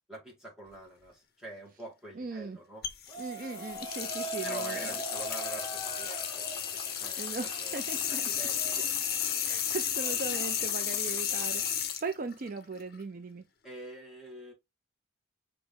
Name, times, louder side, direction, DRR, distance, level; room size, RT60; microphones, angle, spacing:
voice 1, 0.1-2.8 4.4-6.5 6.8-7.2 7.6-8.9 13.6-14.5, right 1 dB, ahead, 1.9 m, -46 dB
voice 2, 2.2-2.6 3.2-4.8 7.2-8.2 8.6-8.8 9.4-13.4, right 4 dB, 45° right, 0.4 m, -39 dB
sound 1, 2.8-13.0, left 9 dB, 50° left, 0.7 m, -33 dB
sound 2, 3.1-12.0, right 1 dB, 20° left, 1.4 m, -42 dB
4.9 x 3.1 x 3.5 m
head